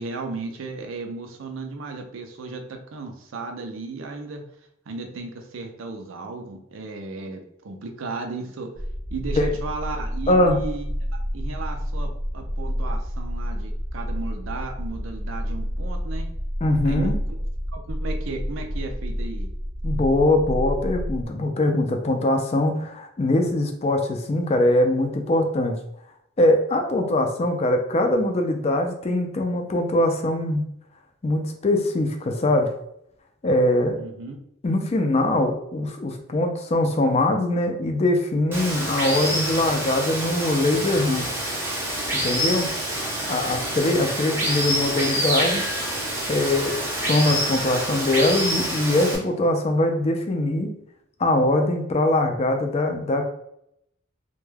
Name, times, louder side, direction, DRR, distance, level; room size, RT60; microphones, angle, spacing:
voice 1, 0.0-4.4 4.9-8.7 9.1-11.1 11.3-16.3 16.8-17.1 17.7-19.5 34.0-34.4, right 3 dB, 90° right, 4 dB, 0.5 m, -35 dB
sound 1, 8.8-21.3, equal, 65° left, 0.7 m, -29 dB
voice 2, 10.3-10.6 16.6-17.2 19.8-25.8 26.4-30.6 31.2-32.7 33.4-34.0 34.6-41.3 42.2-42.7 43.3-45.7 46.3-50.7 51.2-53.3, left 1 dB, 35° left, 4 dB, 0.4 m, -22 dB
Water, 38.5-49.2, right 1 dB, 10° right, 0.7 m, -27 dB
2.2 x 2.2 x 3.2 m, 0.75 s
head